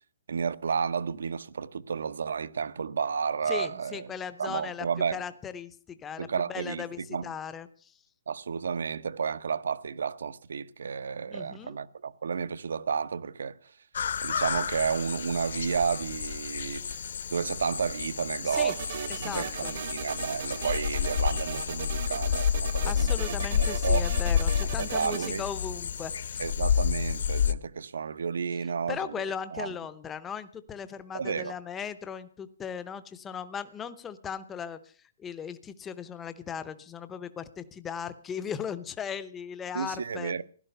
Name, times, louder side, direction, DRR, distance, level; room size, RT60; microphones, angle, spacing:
voice 1, 0.3-4.1 4.4-5.2 6.2-7.3 8.3-13.7 14.2-17.0 17.3-23.1 23.5-24.1 24.8-25.4 26.4-29.1 29.5-29.7 31.1-31.5 39.7-40.4, right 6 dB, 70° right, 1.0 m, -32 dB
voice 2, 3.5-4.9 5.1-8.0 11.3-11.8 18.5-18.7 19.1-19.8 22.8-26.4 28.9-34.9 35.2-40.3, left 7 dB, 10° left, 0.7 m, -38 dB
sound 1, 13.9-27.5, left 8 dB, 55° left, 1.0 m, -30 dB
sound 2, 18.5-25.3, right 9 dB, 40° right, 1.0 m, -38 dB
16.0 x 12.5 x 6.7 m
hypercardioid pair, 180°, 0 cm